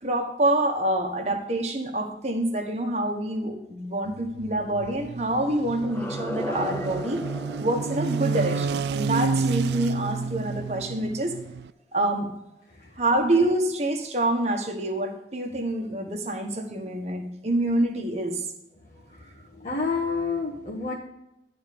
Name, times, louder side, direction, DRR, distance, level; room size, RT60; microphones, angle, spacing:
voice 1, 0.0-7.2 7.6-11.3 11.9-12.3 13.0-18.5, right 1 dB, 40° right, 3 dB, 1.4 m, -26 dB
sound 1, 4.1-11.7, right 5 dB, 70° right, 0.3 m, -30 dB
sound 2, 5.8-10.7, left 1 dB, 10° left, 0.5 m, -37 dB
voice 2, 19.6-21.0, left 4 dB, 40° left, -3 dB, 1.4 m, -28 dB
11.5 x 4.4 x 6.8 m, 0.90 s
head